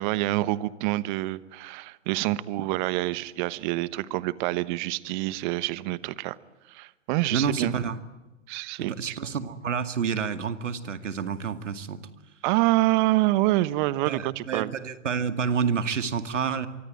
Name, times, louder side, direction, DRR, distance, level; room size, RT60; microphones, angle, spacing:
voice 1, 0.0-6.4 6.7-7.7 8.5-9.1 12.4-14.7, right 18 dB, 40° right, 17 dB, 1.2 m, -26 dB
voice 2, 7.3-8.0 8.8-12.0 14.1-16.7, right 6 dB, 75° right, 11 dB, 2.2 m, -29 dB
25.5 x 24.0 x 9.1 m, 1.1 s
hypercardioid pair, 115°, 37 cm